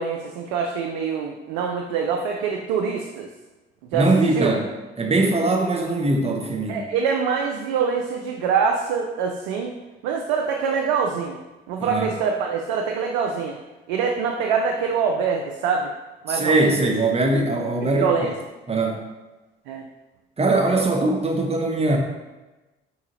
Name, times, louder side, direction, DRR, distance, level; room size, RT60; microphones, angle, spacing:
voice 1, 0.0-3.3 3.9-4.1 4.4-4.5 6.7-9.7 10.0-11.4 11.7-13.6 13.9-15.9 16.2-16.9 18.0-18.4 19.7-19.8, right 6 dB, 70° right, 2 dB, 0.5 m, -24 dB
voice 2, 3.9-4.6 5.0-6.8 11.8-12.1 16.3-18.1 18.7-19.0 20.4-22.0, right 2 dB, 20° right, 2 dB, 0.8 m, -21 dB
4.6 x 3.7 x 2.9 m, 1.1 s
figure-of-eight pair, 45°, 29 cm